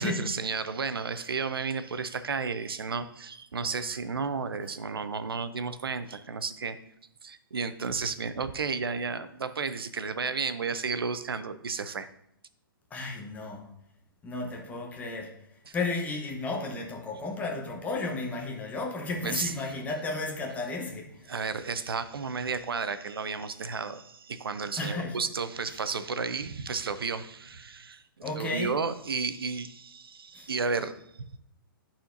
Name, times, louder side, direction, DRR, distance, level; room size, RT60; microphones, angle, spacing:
voice 1, 0.0-6.8 7.2-12.1 15.7-15.8 19.2-19.5 21.3-31.0, right 5 dB, 80° right, 0.6 m, -32 dB
voice 2, 12.9-13.7 14.2-15.3 15.7-21.3 24.8-25.2 28.2-28.8 30.3-30.5, left 3 dB, 10° left, 1.0 m, -33 dB
12.5 x 4.3 x 2.6 m
hypercardioid pair, 135°, 12 cm